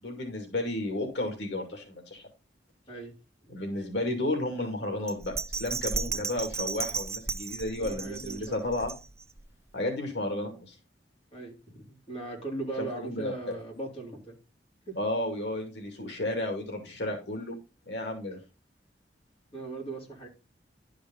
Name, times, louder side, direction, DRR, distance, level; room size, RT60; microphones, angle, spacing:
voice 1, 0.0-2.2 3.5-8.9 9.7-10.8 12.8-13.6 15.0-17.5 17.9-18.4, left 1 dB, 85° left, 2 dB, 2.4 m, -32 dB
Bell, 5.1-9.4 9.8-9.9, right 4 dB, 15° right, 0.5 m, -34 dB
voice 2, 7.8-8.5 11.3-14.4 14.9-15.0 19.5-20.3, right 2 dB, 35° left, -1 dB, 3.1 m, -38 dB
11.5 x 5.1 x 3.9 m, 0.30 s
head